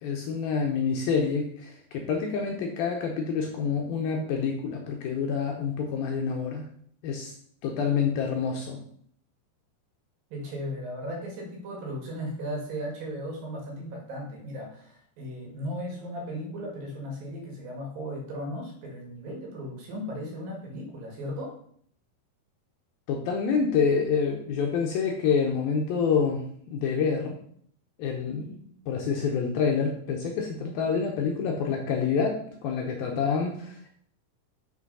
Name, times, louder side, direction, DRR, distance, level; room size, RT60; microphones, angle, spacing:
voice 1, 0.0-6.7 7.0-7.3 7.6-8.8 23.1-27.3 28.0-28.6 28.9-34.0, left 6 dB, 75° left, 1 dB, 2.4 m, -27 dB
voice 2, 10.3-21.5, equal, 60° right, 0 dB, 3.3 m, -36 dB
6.7 x 6.0 x 5.4 m, 0.63 s
omnidirectional pair, 5.0 m